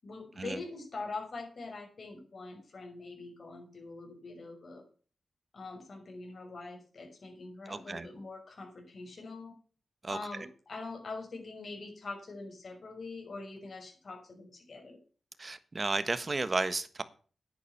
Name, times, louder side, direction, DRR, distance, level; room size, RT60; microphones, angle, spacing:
voice 1, 0.0-4.8 5.5-9.5 10.1-15.0, left 3 dB, 55° left, 6.0 m, -43 dB
voice 2, 7.7-8.1 10.0-10.2 15.4-17.0, right 3 dB, 35° right, 1.3 m, -33 dB
10.0 x 10.0 x 5.8 m
cardioid pair, 75°, 0 cm